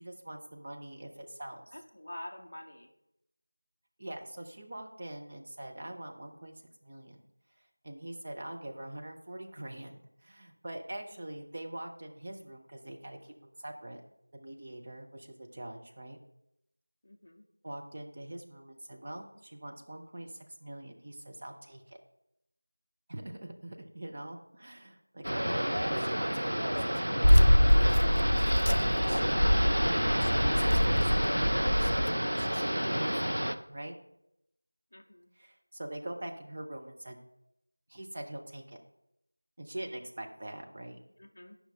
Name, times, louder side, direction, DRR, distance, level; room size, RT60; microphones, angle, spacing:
voice 1, 0.0-1.8 4.0-7.2 7.6-14.0 14.3-16.2 17.6-22.0 23.1-29.2 30.2-34.0 35.3-37.2 37.9-38.8 39.6-41.0, right 1 dB, 15° right, 2 dB, 0.4 m, -43 dB
voice 2, 1.7-2.9 17.0-17.4 25.4-25.6 34.9-35.3 41.2-41.6, left 1 dB, 25° left, 2 dB, 0.6 m, -47 dB
sound 1, 25.2-33.6, equal, 75° right, 0.5 m, -30 dB
sound 2, 27.2-32.1, equal, 70° left, 0.4 m, -24 dB
10.0 x 5.6 x 2.7 m, 0.84 s
figure-of-eight pair, 180°, 0 cm